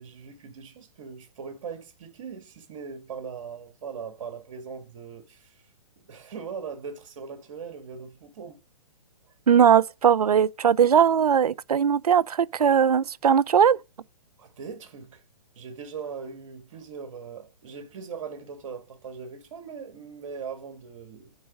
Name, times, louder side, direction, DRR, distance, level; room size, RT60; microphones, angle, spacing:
voice 1, 0.0-5.5 6.0-8.6 14.4-15.2 15.6-21.3, right 6 dB, 55° right, 2.0 m, -40 dB
voice 2, 9.5-13.8, right 8 dB, 90° right, 0.5 m, -19 dB
9.9 x 4.0 x 7.3 m
hypercardioid pair, 135°, 19 cm